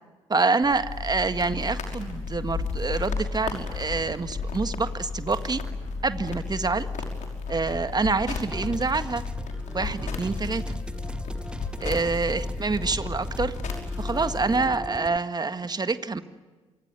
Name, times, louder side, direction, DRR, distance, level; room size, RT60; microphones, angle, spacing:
voice 1, 0.3-5.6 6.0-6.9 7.5-9.2 9.7-10.8 11.8-13.5 14.0-16.2, right 4 dB, 30° right, 11 dB, 1.7 m, -26 dB
sound 1, 0.6-14.7, left 4 dB, 60° left, 5.6 m, -33 dB
sound 2, 8.5-15.2, right 1 dB, 5° right, 1.1 m, -38 dB
28.5 x 25.0 x 6.9 m, 1.3 s
figure-of-eight pair, 40°, 14 cm